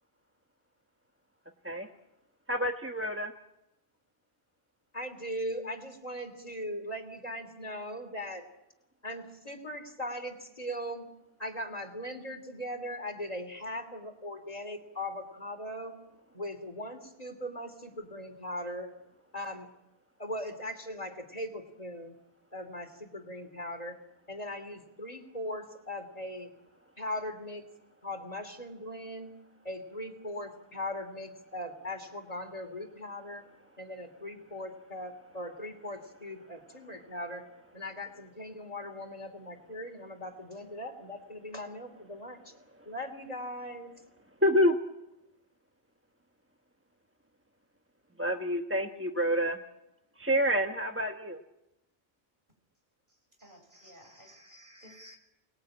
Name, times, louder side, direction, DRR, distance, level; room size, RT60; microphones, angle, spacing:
voice 1, 2.5-3.3 44.4-44.8 48.2-49.6 50.2-51.4, equal, 15° right, 3 dB, 1.2 m, -27 dB
voice 2, 4.9-8.5 9.0-11.1 11.4-16.0 16.3-18.9 19.3-19.7 20.2-22.1 22.5-24.0 24.3-26.5 27.0-27.7 28.0-29.3 29.6-33.4 33.8-37.5 37.7-42.5 42.8-43.9, left 1 dB, 40° left, 6 dB, 3.0 m, -39 dB
voice 3, 53.4-55.2, equal, 55° right, 3 dB, 6.9 m, -53 dB
28.5 x 20.5 x 8.8 m, 0.90 s
omnidirectional pair, 1.0 m